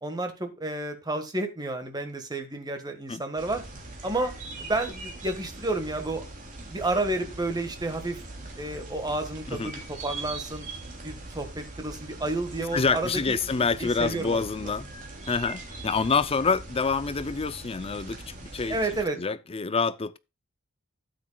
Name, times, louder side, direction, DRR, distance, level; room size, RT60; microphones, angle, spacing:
voice 1, 0.0-3.6 4.0-4.3 4.6-6.2 6.7-8.2 8.5-10.7 11.0-14.7 18.7-19.2, right 2 dB, 20° right, 1.6 m, -31 dB
sound 1, 3.4-19.1, right 2 dB, 35° right, 2.9 m, -41 dB
voice 2, 12.7-14.9 15.3-18.8 19.2-20.2, left 4 dB, 25° left, 0.5 m, -27 dB
12.5 x 8.4 x 2.3 m
head